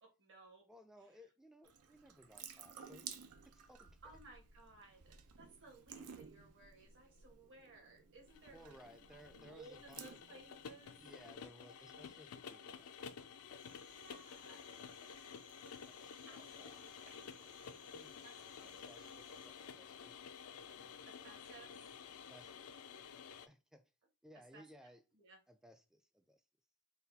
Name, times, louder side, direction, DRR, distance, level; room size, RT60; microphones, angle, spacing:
voice 1, 0.0-0.7 4.0-8.8 9.1-11.0 13.9-14.6 16.3-17.6 18.2-18.3 18.6-18.9 21.0-21.7 24.5-24.6 25.1-25.4, right 3 dB, 55° right, 1.5 m, -60 dB
voice 2, 0.6-4.0 8.5-10.2 11.0-13.8 15.9-16.8 17.6-20.2 20.7-21.2 22.3-23.0 23.4-23.8 24.2-25.0 25.5-26.4, equal, ahead, 0.3 m, -62 dB
Water tap faucet / Sink (filling or washing) / Drip, 1.6-11.4, right 7 dB, 75° right, 0.6 m, -55 dB
sound 1, 8.3-23.5, left 7 dB, 70° left, 0.4 m, -52 dB
Cricket, 13.6-19.5, right 3 dB, 35° right, 0.9 m, -66 dB
4.0 x 2.3 x 4.0 m
head